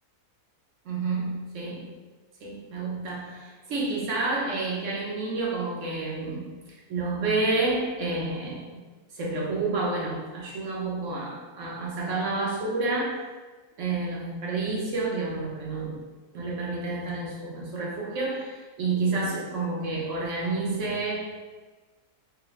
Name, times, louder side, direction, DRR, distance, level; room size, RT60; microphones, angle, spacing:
voice 1, 0.8-1.9 2.4-6.6 6.9-8.7 9.1-13.3 13.8-16.0 16.3-21.4, right 3 dB, 60° right, -3 dB, 1.1 m, -29 dB
4.7 x 2.1 x 3.1 m, 1.3 s
omnidirectional pair, 1.7 m